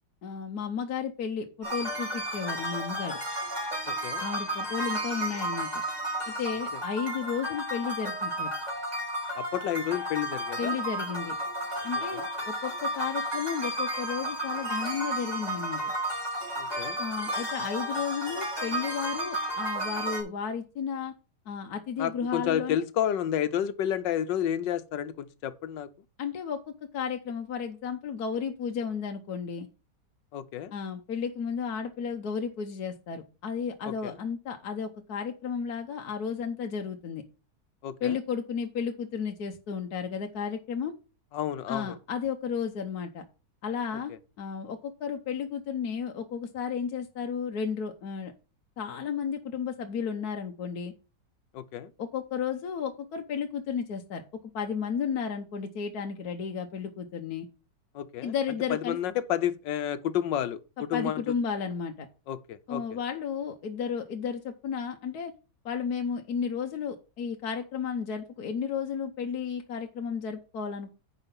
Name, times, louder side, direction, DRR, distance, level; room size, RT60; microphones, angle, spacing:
voice 1, 0.2-3.2 4.2-5.8 6.4-8.5 10.6-11.4 11.8-15.8 17.0-21.1 21.5-22.8 26.2-29.7 30.7-37.2 38.0-40.9 41.7-43.2 43.6-44.1 44.4-48.3 48.8-50.9 52.0-54.2 54.5-57.5 58.2-59.0 60.9-62.1 62.7-65.3 65.6-70.9, left 6 dB, 65° left, 1.4 m, -33 dB
sound 1, 1.6-20.2, right 1 dB, 20° right, 3.5 m, -33 dB
voice 2, 3.9-4.2 9.4-10.7 12.1-12.2 16.6-17.0 22.0-25.9 30.3-30.7 33.8-34.2 37.8-38.2 41.3-42.0 51.5-51.9 57.9-58.3 58.7-61.2 62.3-62.8, left 10 dB, 85° left, 1.5 m, -30 dB
9.9 x 5.0 x 5.3 m
omnidirectional pair, 1.9 m